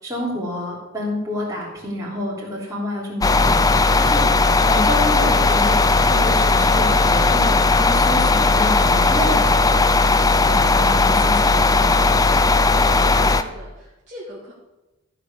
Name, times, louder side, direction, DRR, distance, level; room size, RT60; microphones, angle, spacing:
voice 1, 0.0-4.3 4.7-10.0 10.4-12.1, left 1 dB, 15° right, -5 dB, 3.4 m, -28 dB
sound 1, 3.2-13.4, left 3 dB, 15° left, 0.4 m, -17 dB
voice 2, 9.1-9.8 12.9-14.5, equal, 35° right, -7 dB, 2.4 m, -39 dB
14.0 x 5.0 x 6.9 m, 1.0 s
head